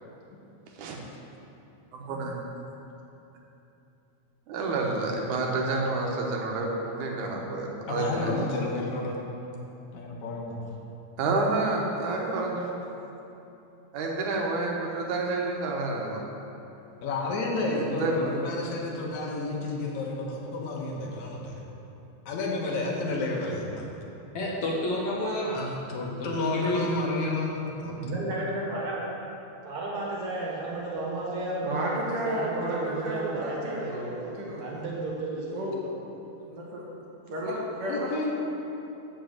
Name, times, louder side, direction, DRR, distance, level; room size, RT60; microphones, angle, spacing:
voice 1, 1.9-2.4 4.5-8.3 11.2-12.7 13.9-16.2 17.8-18.4, right 3 dB, 90° right, 0 dB, 2.6 m, -29 dB
voice 2, 7.9-9.2 9.9-10.6 17.0-21.6 22.3-23.8 25.5-28.0 37.9-38.3, left 2 dB, 80° left, -1 dB, 2.5 m, -31 dB
voice 3, 24.3-25.6 26.2-27.3, left 1 dB, 60° left, -4 dB, 1.9 m, -30 dB
voice 4, 27.8-29.1 29.4-35.9, right 2 dB, 75° right, -4 dB, 2.8 m, -33 dB
voice 5, 31.6-34.7 35.5-35.8 36.4-36.8 37.3-38.3, right 1 dB, 55° right, -4 dB, 2.2 m, -32 dB
7.2 x 6.2 x 7.6 m, 2.9 s
omnidirectional pair, 3.4 m